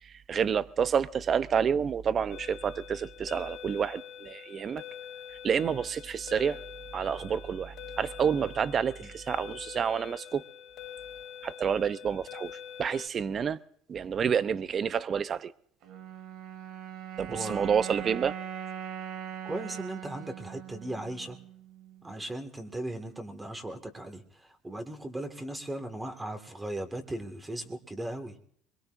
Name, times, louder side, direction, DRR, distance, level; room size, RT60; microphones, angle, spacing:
voice 1, 0.0-4.8 5.4-6.6 6.9-10.4 11.4-12.5 12.8-13.6 13.9-15.5 17.2-18.4, right 7 dB, 40° right, 0.6 m, -29 dB
sound 1, 2.3-13.1, left 9 dB, 60° left, 2.6 m, -45 dB
sound 2, 15.8-22.2, right 9 dB, 70° right, 2.2 m, -41 dB
voice 2, 17.3-17.7 19.4-21.4 22.0-28.4, right 1 dB, 15° right, 1.8 m, -37 dB
24.0 x 22.0 x 2.6 m
supercardioid pair, 105°, 0 cm